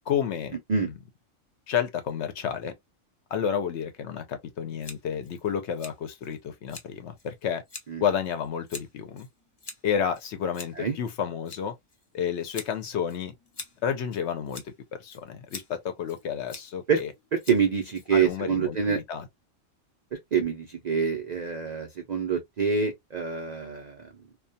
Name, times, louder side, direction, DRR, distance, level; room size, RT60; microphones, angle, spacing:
voice 1, 0.1-0.6 0.8-0.9 1.7-2.7 3.3-7.6 8.0-9.3 9.8-11.7 12.1-13.3 13.8-17.1 18.1-19.3, left 8 dB, 65° left, 0.8 m, -30 dB
Scissors, 4.8-18.5, left 3 dB, 40° left, 0.3 m, -47 dB
voice 2, 17.3-19.0 20.3-24.1, right 6 dB, 75° right, 0.3 m, -26 dB
2.3 x 2.2 x 2.6 m
omnidirectional pair, 1.4 m